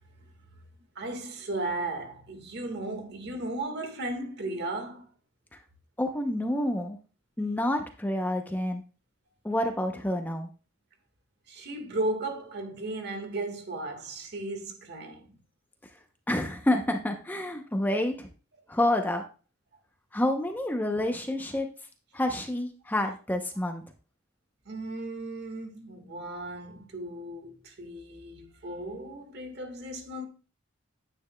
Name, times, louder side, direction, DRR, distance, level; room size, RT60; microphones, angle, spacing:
voice 1, 0.9-5.1 11.5-15.4 24.6-30.3, right 2 dB, 55° right, 1.6 m, -35 dB
voice 2, 6.0-7.0 7.4-8.8 9.4-10.5 16.3-18.3 18.7-19.2 20.1-21.7 22.1-23.8, left 1 dB, 10° left, 0.6 m, -28 dB
9.5 x 9.5 x 2.2 m
head